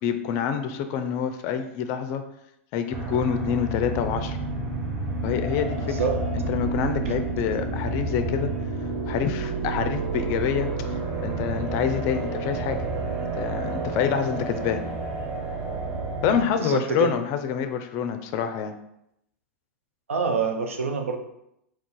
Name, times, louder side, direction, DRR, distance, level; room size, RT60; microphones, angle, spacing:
voice 1, 0.0-2.2 2.7-4.4 5.2-6.0 6.3-8.5 9.1-10.9 11.2-12.8 13.4-14.8 16.2-18.7, left 8 dB, 45° left, 8 dB, 0.4 m, -27 dB
sound 1, 2.9-16.4, right 3 dB, 40° right, 0.9 m, -30 dB
voice 2, 5.8-6.2 7.0-7.7 16.5-17.1 20.1-21.2, right 5 dB, 90° right, 5 dB, 0.4 m, -27 dB
2.5 x 2.3 x 3.8 m, 0.81 s
hypercardioid pair, 105°, 7 cm